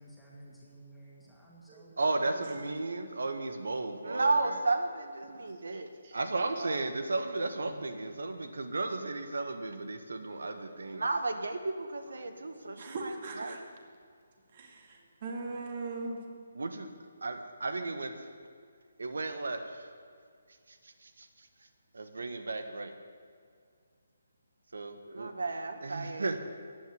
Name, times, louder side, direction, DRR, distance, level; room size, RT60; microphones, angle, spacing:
voice 1, 0.0-2.8, equal, ahead, -7 dB, 2.3 m, -53 dB
voice 2, 2.0-13.1 13.4-13.6 16.5-16.9 17.2-18.1 19.0-19.9 20.7-20.8 21.0-21.3 21.9-22.9 24.7-26.4, right 3 dB, 85° right, 8 dB, 1.5 m, -33 dB
voice 3, 5.7-6.2 7.6-7.7 10.4-10.6 12.1-13.6 14.5-16.2, right 3 dB, 35° right, 3 dB, 2.2 m, -41 dB
14.5 x 9.3 x 9.7 m, 2.1 s
hypercardioid pair, 170°, 0 cm